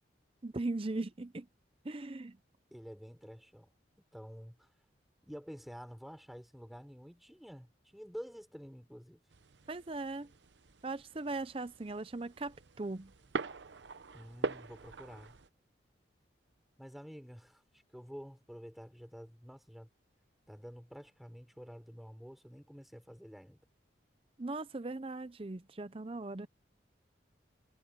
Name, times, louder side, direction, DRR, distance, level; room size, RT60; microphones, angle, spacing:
voice 1, 0.4-1.5 1.8-2.4 9.7-10.3 10.8-13.1 24.4-26.5, right 2 dB, 30° right, 0.6 m, -39 dB
voice 2, 2.7-3.7 4.1-4.7 5.3-9.2 14.1-15.3 16.8-19.9 20.5-23.6, equal, ahead, 6.4 m, -49 dB
sound 1, 9.3-15.5, right 3 dB, 70° right, 0.8 m, -43 dB
head